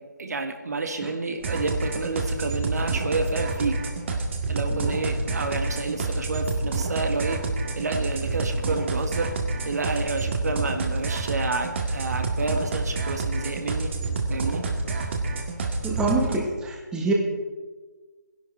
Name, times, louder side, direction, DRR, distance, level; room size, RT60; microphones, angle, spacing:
voice 1, 0.2-3.8 4.5-7.4 7.7-9.3 9.6-13.9 14.3-14.6 16.1-16.3, right 3 dB, 60° right, 6 dB, 1.7 m, -29 dB
sound 1, 1.4-16.4, right 3 dB, 40° right, 1.8 m, -28 dB
voice 2, 4.7-5.0 15.8-17.1, right 3 dB, 5° right, -1 dB, 1.5 m, -27 dB
16.5 x 11.5 x 4.6 m, 1.3 s
figure-of-eight pair, 150°, 10 cm